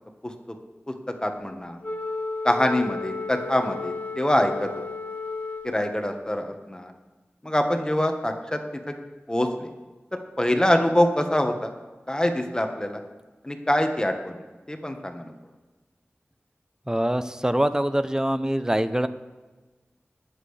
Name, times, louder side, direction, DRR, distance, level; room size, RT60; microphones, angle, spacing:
voice 1, 0.2-0.6 0.9-1.8 2.4-4.7 5.6-6.9 7.4-8.6 8.9-9.0 9.3-9.7 10.1-11.7 12.1-13.0 13.4-14.4 14.7-15.3, left 1 dB, 20° left, 5 dB, 1.4 m, -25 dB
Wind instrument woodwind instrument, 1.8-6.2, left 3 dB, 40° left, 1.3 m, -34 dB
voice 2, 16.9-19.1, right 1 dB, 15° right, 11 dB, 0.6 m, -24 dB
19.0 x 7.6 x 3.4 m, 1.2 s
wide cardioid pair, 55°, 4 cm